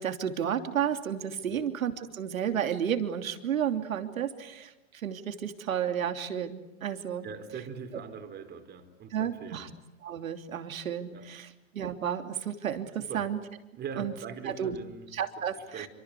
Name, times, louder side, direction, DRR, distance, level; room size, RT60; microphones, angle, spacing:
voice 1, 0.0-7.3 9.1-9.7 10.0-13.4 14.0-14.1 14.5-14.8 15.1-15.9, right 9 dB, 80° right, 7 dB, 3.0 m, -32 dB
voice 2, 7.2-9.6 11.1-11.3 13.0-13.2 13.8-15.1 15.7-15.9, right 6 dB, 25° right, 7 dB, 4.2 m, -41 dB
28.0 x 25.0 x 8.4 m, 1.0 s
hypercardioid pair, 125°, 40 cm